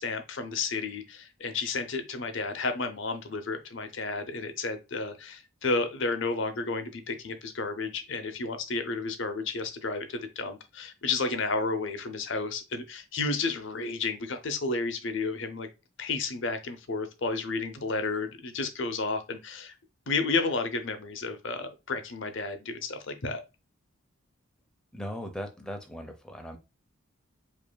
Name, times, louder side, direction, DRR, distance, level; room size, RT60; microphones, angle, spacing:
voice 1, 0.0-15.7 16.0-19.8 20.1-23.4, left 3 dB, 60° left, 8 dB, 0.7 m, -32 dB
voice 2, 24.9-26.6, equal, 5° left, 5 dB, 0.6 m, -38 dB
5.0 x 2.7 x 2.2 m, 0.27 s
head